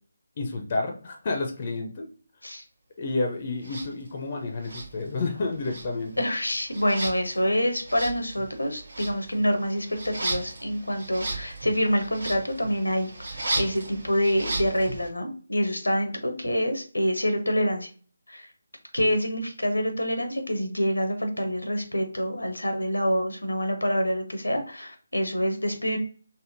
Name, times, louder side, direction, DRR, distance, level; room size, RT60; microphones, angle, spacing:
voice 1, 0.4-2.1 3.0-6.2, left 3 dB, 35° left, 2 dB, 0.6 m, -30 dB
sound 1, 3.6-3.9 4.6-5.4 5.6-15.1, right 2 dB, 65° right, 1.1 m, -35 dB
voice 2, 6.2-17.9 18.3-18.5 18.9-26.0, equal, 85° left, 5 dB, 0.7 m, -26 dB
3.5 x 2.1 x 2.6 m, 0.41 s
figure-of-eight pair, 155°, 0 cm